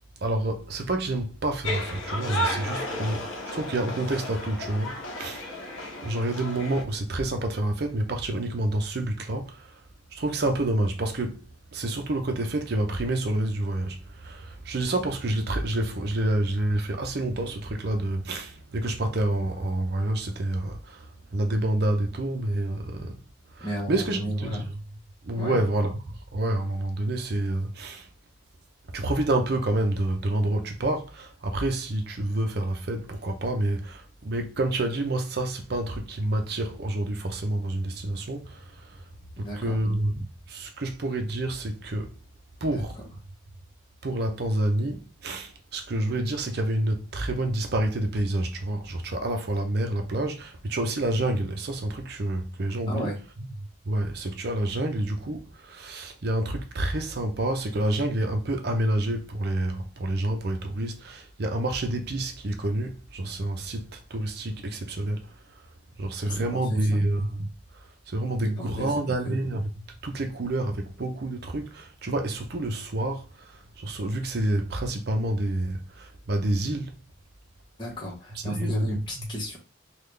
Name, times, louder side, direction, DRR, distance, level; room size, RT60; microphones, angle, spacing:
voice 1, 0.2-5.5 6.0-9.8 10.1-11.4 11.7-23.2 23.5-24.7 25.2-28.1 28.9-39.0 39.4-42.1 42.6-43.0 44.0-53.1 53.4-53.5 53.8-65.4 66.0-69.7 70.0-77.0 78.3-79.3, right 1 dB, 50° right, 0.6 m, -28 dB
sound 1, 1.6-6.8, left 1 dB, 70° left, 0.8 m, -33 dB
voice 2, 23.6-24.6 25.3-25.6 39.4-39.8 42.6-42.8 52.9-53.2 66.2-66.9 68.6-69.0 69.2-69.3 77.8-79.6, equal, 25° left, 1.1 m, -34 dB
3.8 x 2.4 x 3.3 m
head